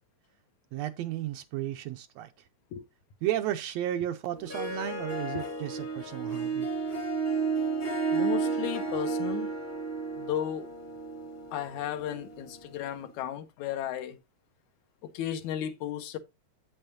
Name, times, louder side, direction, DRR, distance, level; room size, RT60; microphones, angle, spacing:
voice 1, 0.7-2.3 3.2-6.7, right 12 dB, 80° right, 1.6 m, -33 dB
Harp, 4.3-12.9, right 4 dB, 30° left, 0.9 m, -32 dB
voice 2, 8.1-9.5 10.2-10.7 11.5-14.2 15.1-16.2, left 11 dB, 80° left, 2.3 m, -34 dB
8.9 x 8.5 x 2.7 m
omnidirectional pair, 3.3 m